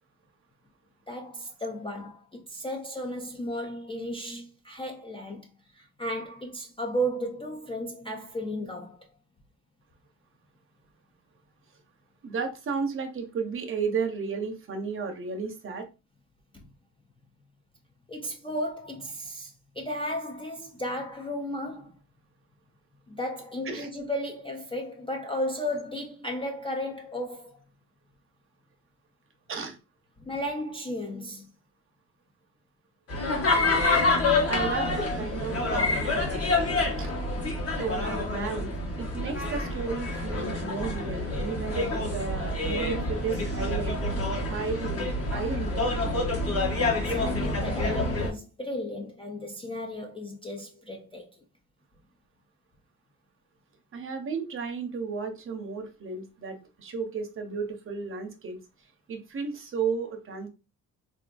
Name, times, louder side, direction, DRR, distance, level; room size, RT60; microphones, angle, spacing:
voice 1, 1.1-5.5 5.7-9.0 16.5-16.7 18.1-21.9 23.1-27.6 30.2-31.5 39.0-39.2 46.9-51.3, equal, 15° left, 0.3 m, -34 dB
voice 2, 12.2-15.8 23.7-23.9 29.5-29.7 34.5-35.9 37.0-37.1 37.8-38.7 39.0-44.2 44.5-45.9 53.9-58.6 59.1-60.5, right 5 dB, 40° right, 0.6 m, -33 dB
sound 1, 33.1-48.3, left 2 dB, 45° left, 1.0 m, -27 dB
3.5 x 2.5 x 2.2 m
wide cardioid pair, 140°, 33 cm